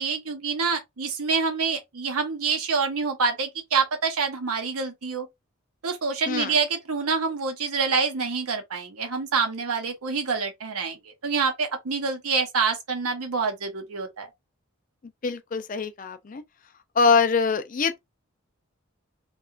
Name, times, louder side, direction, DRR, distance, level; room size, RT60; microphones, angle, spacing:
voice 1, 0.0-5.3 5.8-14.3, right 5 dB, 90° right, 0.8 m, -26 dB
voice 2, 6.3-6.6 15.2-16.4 17.0-18.0, left 5 dB, 35° left, 0.4 m, -23 dB
2.8 x 2.3 x 2.4 m
head